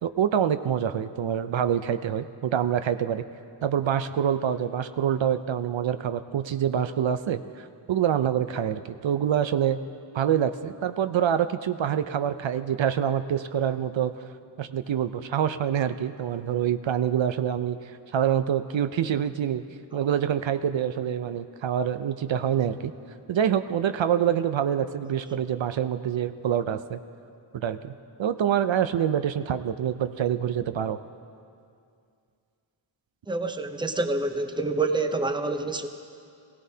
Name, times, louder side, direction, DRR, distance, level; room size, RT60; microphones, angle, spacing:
voice 1, 0.0-3.2 3.6-9.8 10.1-14.3 14.6-19.6 19.9-22.9 23.3-27.0 27.5-27.9 28.2-31.0, right 9 dB, 75° right, 11 dB, 0.6 m, -26 dB
voice 2, 33.3-35.9, right 3 dB, 10° right, 7 dB, 0.6 m, -27 dB
20.0 x 16.5 x 2.8 m, 2.4 s
wide cardioid pair, 95°, 47 cm